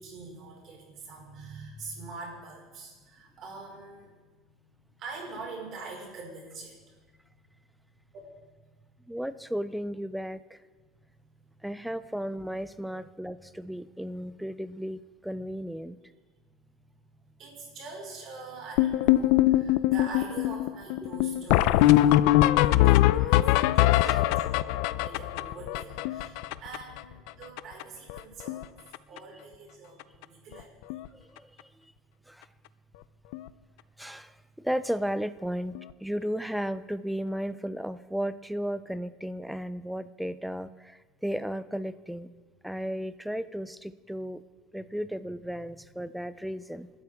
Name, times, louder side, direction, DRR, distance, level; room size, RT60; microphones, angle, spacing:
voice 1, 0.0-9.2 11.1-11.2 17.4-31.0 45.5-45.6, right 3 dB, 45° right, -1 dB, 4.9 m, -45 dB
voice 2, 9.1-10.6 11.6-16.0 23.2-23.3 24.0-24.4 31.1-31.9 32.3-32.5 34.0-42.3 42.6-44.4 44.7-46.9, equal, ahead, 14 dB, 0.4 m, -34 dB
sound 1, 18.8-27.0 27.3-27.4 27.6-27.8 28.1-28.6 28.9-29.2 30.0-30.1 30.5-30.6 30.9-31.1 33.3-33.4 35.7-35.8, left 15 dB, 75° left, 0.5 m, -22 dB
29.5 x 13.0 x 3.6 m, 1.3 s
cardioid pair, 155°, 0 cm